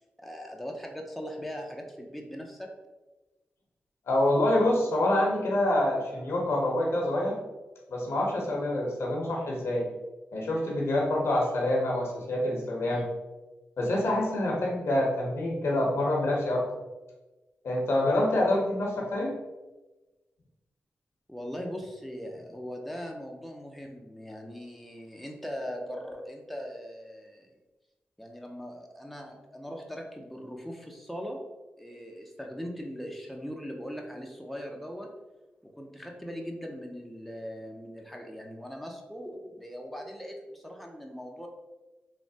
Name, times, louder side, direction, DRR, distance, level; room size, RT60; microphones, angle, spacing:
voice 1, 0.2-2.7 21.3-27.5 28.2-31.4 31.8-35.1 35.6-41.5, equal, ahead, 1 dB, 0.5 m, -40 dB
voice 2, 4.1-7.4 7.9-9.9 10.3-13.1 13.8-16.6 17.6-19.4, left 1 dB, 75° left, -2 dB, 0.7 m, -26 dB
3.1 x 2.0 x 2.7 m, 1.1 s
supercardioid pair, 40°, 4 cm